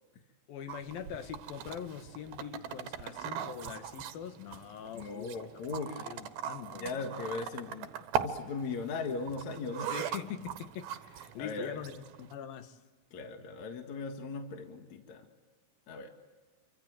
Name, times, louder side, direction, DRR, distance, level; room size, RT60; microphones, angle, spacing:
voice 1, 0.5-5.4 6.0-7.0 9.9-12.8, left 9 dB, 80° left, 3.3 m, -43 dB
sound 1, 0.7-12.3, right 8 dB, 90° right, 3.1 m, -40 dB
voice 2, 4.9-6.1 6.7-7.9 8.2-9.9 11.4-11.8 13.1-15.3 15.9-16.1, left 4 dB, 55° left, 2.9 m, -38 dB
29.0 x 25.0 x 7.8 m
omnidirectional pair, 4.1 m